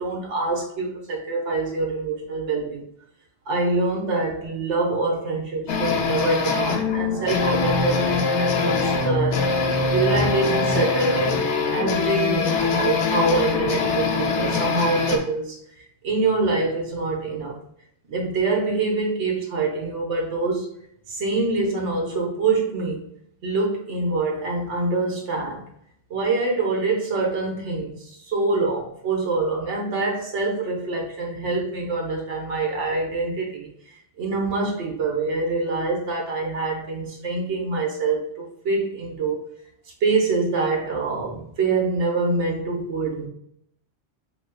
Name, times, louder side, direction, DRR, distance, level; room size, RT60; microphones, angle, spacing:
voice 1, 0.0-2.8 3.5-11.4 11.7-15.6 16.0-17.6 18.1-20.7 21.1-23.1 23.4-25.6 26.1-39.4 40.0-43.3, right 3 dB, 90° right, 0 dB, 1.3 m, -25 dB
sound 1, 5.7-15.2, left 4 dB, 80° left, 1.0 m, -23 dB
5.0 x 3.0 x 2.2 m, 0.70 s
omnidirectional pair, 1.2 m